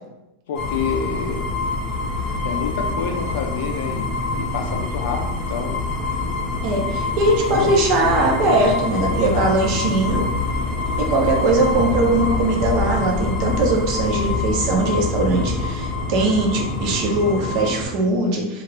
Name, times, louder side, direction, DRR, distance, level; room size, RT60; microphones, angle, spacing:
voice 1, 0.5-1.5 2.4-5.8 7.5-8.3 9.0-9.4, left 6 dB, 80° left, 4 dB, 0.4 m, -29 dB
sound 1, 0.5-17.9, left 3 dB, 20° left, 0.7 m, -25 dB
voice 2, 6.6-10.2 11.0-18.6, right 2 dB, 40° right, 1 dB, 0.6 m, -20 dB
2.8 x 2.4 x 3.2 m, 0.91 s
supercardioid pair, 175°, 0 cm